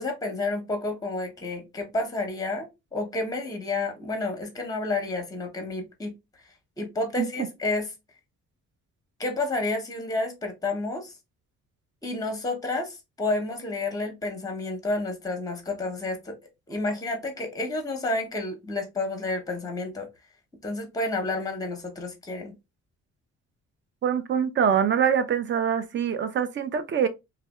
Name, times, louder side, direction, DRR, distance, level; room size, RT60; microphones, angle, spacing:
voice 1, 0.0-6.1 6.8-7.9 9.2-11.1 12.0-16.3 16.7-20.1 20.6-22.5, left 2 dB, 10° left, 0.8 m, -30 dB
voice 2, 24.0-27.1, right 7 dB, 40° right, 0.5 m, -24 dB
2.6 x 2.1 x 2.2 m
cardioid pair, 90°, 30 cm